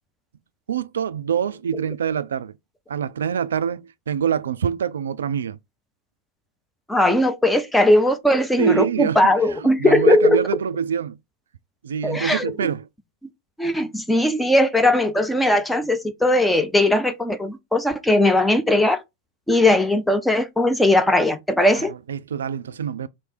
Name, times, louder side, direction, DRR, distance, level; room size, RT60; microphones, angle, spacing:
voice 1, 0.7-2.5 2.9-5.6 8.6-9.2 9.6-11.2 11.8-12.9 21.8-23.1, right 8 dB, 65° right, 0.3 m, -25 dB
voice 2, 6.9-10.4 12.0-12.7 13.6-19.0 19.5-21.9, left 1 dB, 5° left, 0.6 m, -19 dB
3.3 x 3.0 x 4.3 m
figure-of-eight pair, 90°, 0 cm